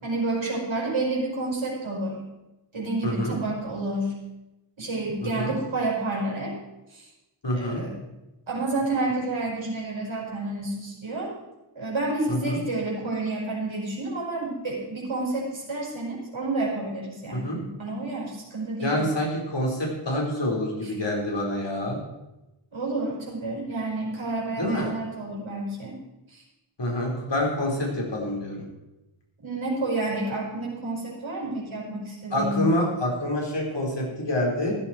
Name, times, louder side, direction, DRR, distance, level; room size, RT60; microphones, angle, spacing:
voice 1, 0.0-2.2 2.7-4.1 4.8-6.6 6.9-7.1 7.5-7.9 8.5-11.3 11.7-19.0 20.8-20.9 22.7-26.0 26.3-26.4 29.4-32.7, right 2 dB, 75° right, -3 dB, 5.2 m, -29 dB
voice 2, 3.0-3.3 5.2-5.5 7.4-7.8 12.3-12.6 17.3-17.6 18.8-22.0 24.6-24.9 26.8-28.6 32.3-34.8, left 1 dB, 60° left, -2 dB, 4.9 m, -27 dB
15.0 x 12.5 x 4.6 m, 0.99 s
wide cardioid pair, 60°, 48 cm